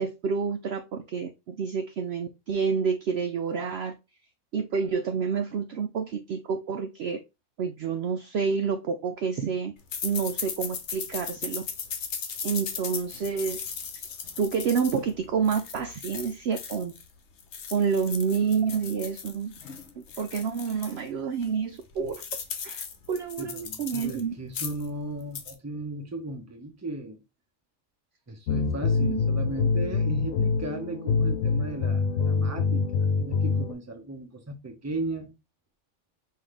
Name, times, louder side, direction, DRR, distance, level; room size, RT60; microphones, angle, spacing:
voice 1, 0.0-3.9 4.5-7.2 7.6-9.7 10.0-11.6 12.4-14.1 14.4-16.9 17.7-19.5 20.2-22.3 22.6-24.4 28.9-29.3, right 6 dB, 65° right, 0.7 m, -29 dB
sound 1, 9.9-17.1 17.4-21.0 21.4-21.5 21.8-24.2 24.5-24.9 25.2-25.5, left 6 dB, 60° left, 1.0 m, -37 dB
voice 2, 23.4-27.2 28.3-32.8 33.2-35.3, right 2 dB, 15° right, 0.8 m, -36 dB
sound 2, 28.5-33.7, left 4 dB, 80° left, 1.1 m, -25 dB
5.6 x 2.8 x 3.3 m
omnidirectional pair, 1.4 m